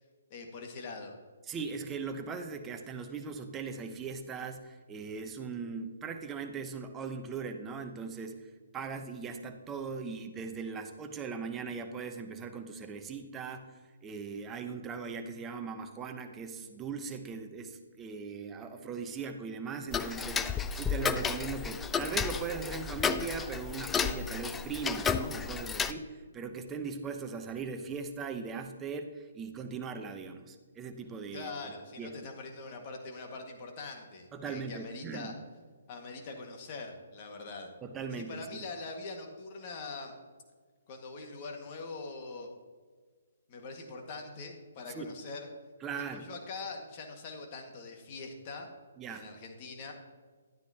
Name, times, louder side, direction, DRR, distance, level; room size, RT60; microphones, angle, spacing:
voice 1, 0.3-1.1 31.3-35.3 35.9-37.7 38.1-40.1 40.9-42.5 43.5-45.5 46.1-48.7 49.1-49.9, left 3 dB, 35° left, 3 dB, 1.8 m, -43 dB
voice 2, 1.5-8.4 8.7-32.3 34.3-35.3 37.8-38.4 44.9-45.1 45.8-46.3 49.0-49.3, right 5 dB, 15° right, 6 dB, 0.9 m, -39 dB
Tick-tock, 19.9-25.9, left 6 dB, 10° left, 0.4 m, -32 dB
11.5 x 9.6 x 2.9 m, 1.5 s
figure-of-eight pair, 140°, 0 cm